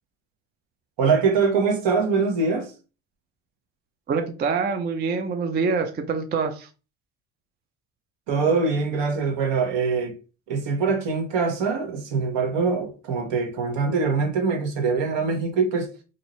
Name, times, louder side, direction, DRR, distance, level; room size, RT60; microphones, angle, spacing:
voice 1, 1.0-2.7 8.3-10.1 10.5-15.9, right 4 dB, 60° right, 1.1 m, -23 dB
voice 2, 4.1-6.7, right 5 dB, 25° right, 0.3 m, -25 dB
2.7 x 2.6 x 3.0 m
supercardioid pair, 80°, 49 cm